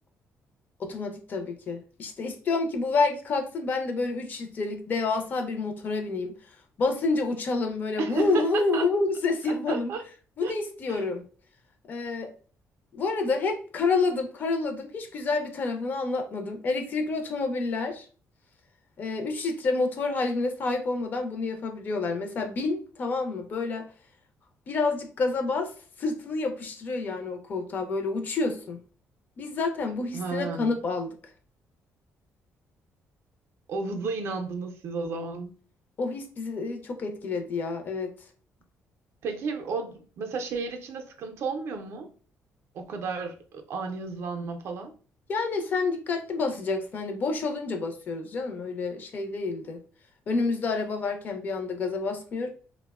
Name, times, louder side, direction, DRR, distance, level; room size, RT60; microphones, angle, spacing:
voice 1, 0.8-6.4 6.8-9.9 10.4-11.2 11.9-12.3 12.9-18.1 19.0-23.9 24.7-25.7 26.0-28.8 29.4-31.2 36.0-38.1 45.3-49.8 50.3-52.5, left 3 dB, 35° left, 5 dB, 0.4 m, -28 dB
voice 2, 8.0-8.8 9.5-10.0 10.4-10.5 10.9-11.0 30.1-30.8 33.7-35.5 39.2-42.1 42.7-44.9, right 4 dB, 55° right, 5 dB, 0.4 m, -32 dB
2.8 x 2.0 x 2.3 m, 0.40 s
cardioid pair, 175°, 5 cm